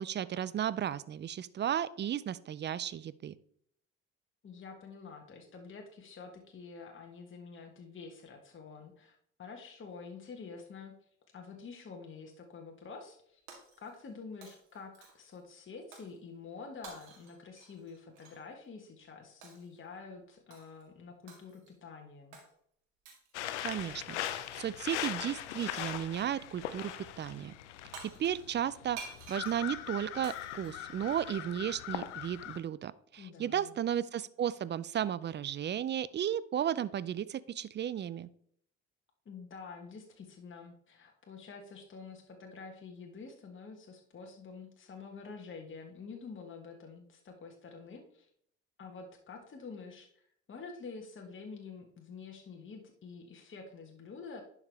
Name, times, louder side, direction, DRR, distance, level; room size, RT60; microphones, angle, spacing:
voice 1, 0.0-3.3 23.6-26.9 27.2-27.6 28.0-38.3, right 10 dB, 35° right, 18 dB, 0.4 m, -34 dB
voice 2, 4.4-11.0 11.3-13.4 13.8-22.4 33.2-33.7 39.2-48.3 48.8-54.4, left 5 dB, 35° left, 2 dB, 1.4 m, -48 dB
Shatter, 13.5-14.1 14.4-15.4 15.9-16.2 16.8-18.4 19.4-19.8 20.5-20.8 21.3-21.8 22.3-22.5 23.1-23.3 24.3-24.8 25.7-26.1 27.6-27.7 27.9-31.5, right 5 dB, 80° right, 1.9 m, -51 dB
sound 1, 23.3-32.6, left 12 dB, 90° left, 0.5 m, -41 dB
10.5 x 4.9 x 3.4 m, 0.66 s
hypercardioid pair, 55°, 34 cm